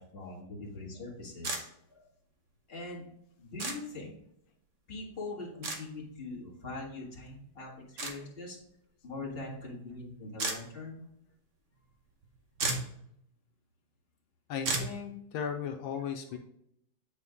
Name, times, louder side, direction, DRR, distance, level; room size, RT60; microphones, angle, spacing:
voice 1, 0.0-2.1 2.7-3.1 3.4-4.1 4.9-8.6 9.0-11.0, left 2 dB, 30° left, -2 dB, 1.8 m, -42 dB
sound 1, 1.4-1.6 3.6-3.8 5.6-5.8 8.0-8.1 10.4-10.6 12.2-12.3 12.5-12.9 14.6-14.9, right 3 dB, 50° right, 1.0 m, -32 dB
voice 2, 14.5-16.4, left 7 dB, 80° left, 4 dB, 1.5 m, -36 dB
8.4 x 4.4 x 3.6 m, 0.74 s
omnidirectional pair, 2.2 m